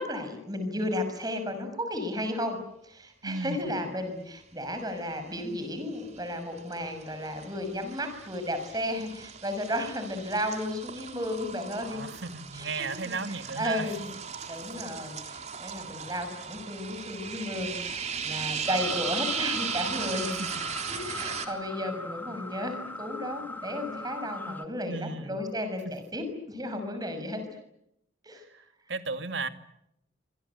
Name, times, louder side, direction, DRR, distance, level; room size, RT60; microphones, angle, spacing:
voice 1, 0.0-2.6 2.8-12.0 12.5-12.9 13.3-14.1 14.5-20.4 20.9-27.4 28.2-28.4, left 1 dB, 20° right, 6.3 m, -33 dB
voice 2, 3.2-3.6 11.8-13.9 20.3-20.5 24.9-25.4 28.5-29.5, right 3 dB, 75° right, 2.3 m, -35 dB
sound 1, 5.1-5.6 5.9-21.5, right 6 dB, 35° right, 3.5 m, -37 dB
sound 2, 18.7-24.6, left 2 dB, 10° left, 1.9 m, -40 dB
27.0 x 26.5 x 8.4 m
head